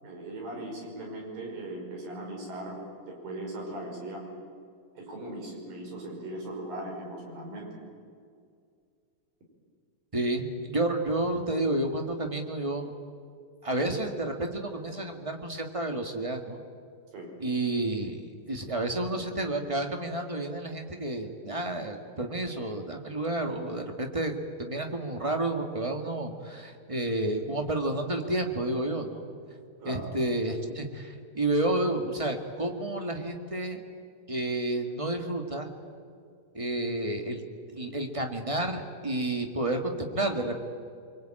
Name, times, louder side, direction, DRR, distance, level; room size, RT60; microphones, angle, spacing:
voice 1, 0.0-2.8 3.0-4.2 4.9-7.8 17.1-17.3 29.8-30.1, right 1 dB, 75° right, 0 dB, 7.2 m, -39 dB
voice 2, 10.1-12.9 13.6-16.6 17.4-29.2 29.8-33.8 34.3-35.7 36.5-37.4 37.7-40.6, right 2 dB, 20° right, 4 dB, 0.8 m, -30 dB
24.5 x 24.5 x 9.0 m, 2.3 s
omnidirectional pair, 4.0 m